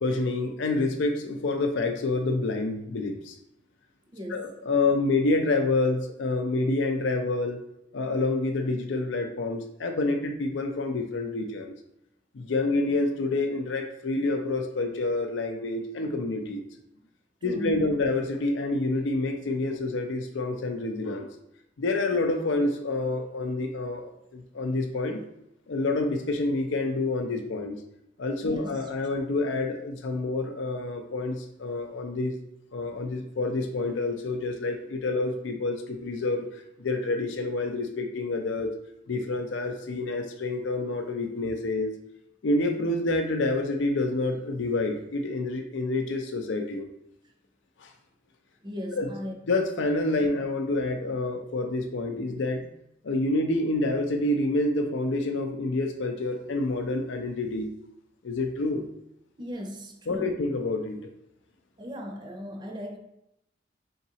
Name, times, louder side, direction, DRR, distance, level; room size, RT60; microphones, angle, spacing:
voice 1, 0.0-3.4 4.3-7.6 7.9-11.7 12.3-16.6 17.4-21.3 21.8-25.2 25.7-27.8 28.2-32.4 32.7-38.7 39.1-41.9 42.4-46.9 47.8-47.9 48.9-49.1 49.5-52.7 53.0-57.7 58.2-58.8 60.1-61.0, left 2 dB, 85° left, 5 dB, 0.5 m, -28 dB
voice 2, 4.1-4.5 17.4-17.9 28.4-28.9 48.6-49.3 59.4-60.4 61.8-63.0, equal, 25° right, 3 dB, 0.5 m, -37 dB
4.0 x 3.6 x 2.8 m, 0.80 s
head